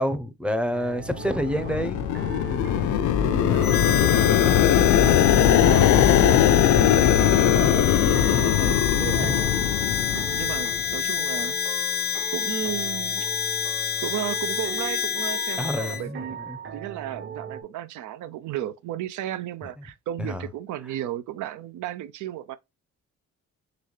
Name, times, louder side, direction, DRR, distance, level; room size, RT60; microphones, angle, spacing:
voice 1, 0.0-2.0 8.3-8.6 9.1-9.3 15.6-16.6 20.2-20.4, equal, 5° right, 0.6 m, -28 dB
sound 1, 0.7-17.6, right 6 dB, 40° right, 1.0 m, -39 dB
sound 2, 1.1-10.9, left 10 dB, 80° left, 0.5 m, -20 dB
voice 2, 3.3-9.6 10.1-11.6 12.3-13.3 14.0-16.4 16.7-22.6, right 12 dB, 75° right, 0.6 m, -34 dB
Harmonica, 3.6-16.0, left 8 dB, 35° left, 0.5 m, -28 dB
4.1 x 3.1 x 3.2 m
cardioid pair, 90°, 30 cm